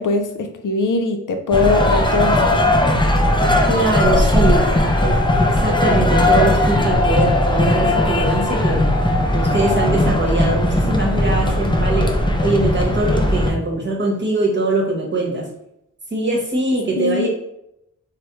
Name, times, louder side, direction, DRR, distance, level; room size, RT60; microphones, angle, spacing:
voice 1, 0.0-2.6 17.0-17.3, left 3 dB, 70° left, 6 dB, 0.5 m, -21 dB
sound 1, 1.5-13.5, left 1 dB, 15° left, 0.4 m, -17 dB
voice 2, 3.7-8.8 9.3-15.5 16.1-17.3, right 2 dB, 35° right, -1 dB, 1.0 m, -22 dB
3.3 x 2.0 x 2.9 m, 0.80 s
cardioid pair, 60°, 33 cm